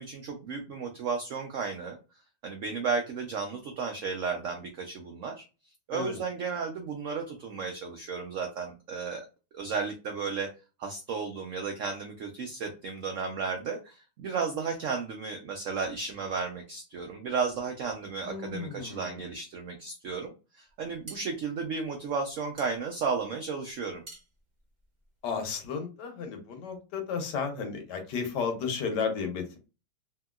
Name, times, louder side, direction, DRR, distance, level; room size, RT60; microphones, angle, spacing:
voice 1, 0.0-2.0 2.4-5.4 5.9-9.2 9.5-10.5 10.8-24.0, right 5 dB, 85° right, 4 dB, 0.6 m, -33 dB
voice 2, 18.2-19.2 25.2-29.6, left 5 dB, 70° left, 5 dB, 1.3 m, -33 dB
sound 1, 20.7-25.6, right 3 dB, 30° right, 1.0 m, -51 dB
2.8 x 2.8 x 2.3 m, 0.31 s
omnidirectional pair, 2.0 m